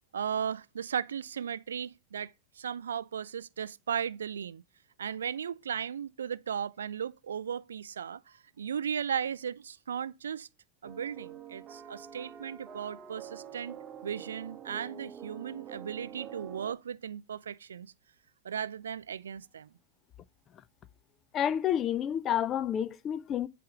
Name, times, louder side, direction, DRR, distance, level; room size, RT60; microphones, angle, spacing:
voice 1, 0.1-4.6 5.0-10.5 10.8-17.9 18.4-19.7, right 8 dB, 65° right, 0.3 m, -36 dB
sound 1, 10.8-16.7, right 9 dB, 25° right, 0.9 m, -46 dB
voice 2, 21.3-23.5, left 10 dB, 30° left, 0.4 m, -29 dB
8.4 x 3.4 x 5.0 m
figure-of-eight pair, 90°, 0 cm